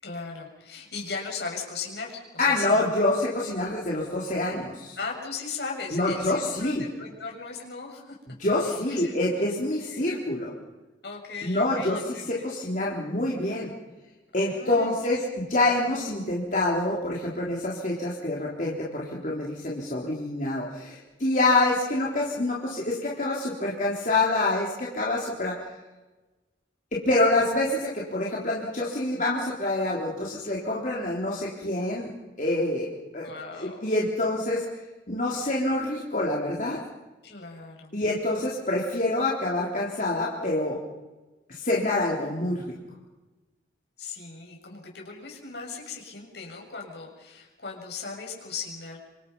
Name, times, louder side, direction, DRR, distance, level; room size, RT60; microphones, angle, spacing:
voice 1, 0.0-2.9 5.0-8.2 8.6-9.4 9.9-10.1 11.0-12.4 14.3-15.4 15.7-15.9 33.2-33.9 37.2-37.9 44.0-49.0, left 4 dB, 65° left, 0 dB, 6.9 m, -38 dB
voice 2, 2.4-5.0 5.9-6.8 8.4-10.5 11.4-13.7 14.3-25.6 26.9-32.1 32.4-32.9 33.1-33.3 33.5-34.6 35.1-36.8 37.9-40.8 41.5-42.8, left 2 dB, 45° left, -4 dB, 3.6 m, -26 dB
28.0 x 26.0 x 5.5 m, 1.2 s
head